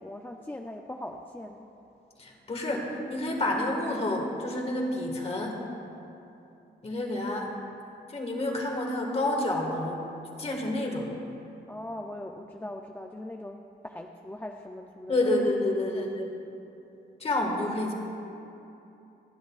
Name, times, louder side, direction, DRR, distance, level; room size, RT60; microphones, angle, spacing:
voice 1, 0.0-1.7 11.7-15.3 15.9-16.0, left 1 dB, 10° left, 2 dB, 0.4 m, -40 dB
voice 2, 2.2-5.7 6.8-7.5 8.1-10.0 10.4-11.1 15.1-16.3 17.2-17.9, left 1 dB, 35° left, 1 dB, 1.7 m, -29 dB
28.5 x 10.0 x 2.4 m, 2.8 s
wide cardioid pair, 155°, 19 cm